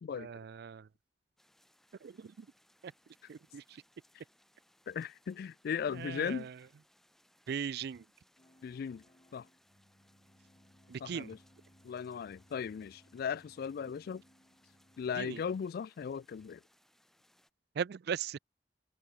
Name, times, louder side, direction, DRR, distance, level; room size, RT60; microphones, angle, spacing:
voice 1, 0.1-0.9 2.0-2.5 2.8-2.9 3.3-3.8 5.9-6.5 7.5-8.0 10.9-11.3 15.2-15.4 17.8-18.4, right 7 dB, 60° right, 0.4 m, -39 dB
sound 1, 1.4-17.5, equal, ahead, 2.3 m, -70 dB
voice 2, 4.9-6.5 8.6-9.0 9.3-9.5 11.0-11.4 11.8-14.2 15.0-16.6, left 7 dB, 55° left, 0.3 m, -37 dB
sound 2, 8.4-15.6, equal, 25° left, 7.4 m, -65 dB
head